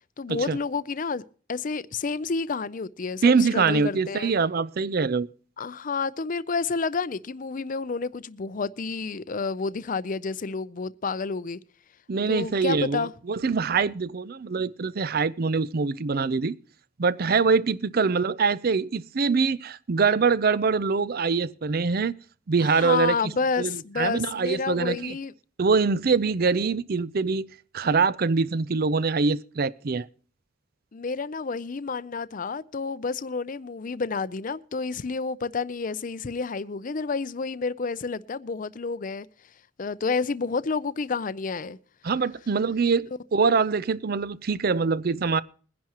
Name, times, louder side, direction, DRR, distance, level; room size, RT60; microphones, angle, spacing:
voice 1, 0.2-1.2 1.5-4.3 5.6-11.6 12.3-13.1 22.6-25.3 30.9-39.3 39.8-41.8, left 4 dB, 45° left, 0.5 m, -30 dB
voice 2, 3.2-5.3 12.1-16.5 17.0-22.1 22.5-23.2 23.6-25.2 25.6-27.5 27.7-30.1 42.0-45.4, right 4 dB, 50° right, 0.5 m, -24 dB
21.5 x 10.5 x 3.0 m
head